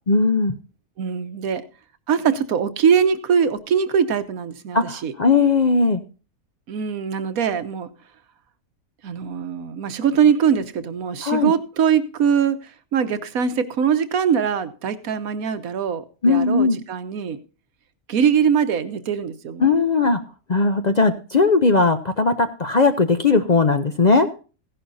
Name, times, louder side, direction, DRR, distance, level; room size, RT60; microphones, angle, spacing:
voice 1, 0.1-0.5 4.7-6.0 11.2-11.5 16.2-16.8 19.6-20.2 20.5-24.3, left 4 dB, 45° left, 8 dB, 0.6 m, -18 dB
voice 2, 1.0-1.6 2.1-5.1 6.7-7.9 9.0-17.4 18.1-19.7, right 7 dB, 80° right, 11 dB, 1.4 m, -22 dB
15.5 x 11.0 x 2.6 m, 0.35 s
omnidirectional pair, 1.5 m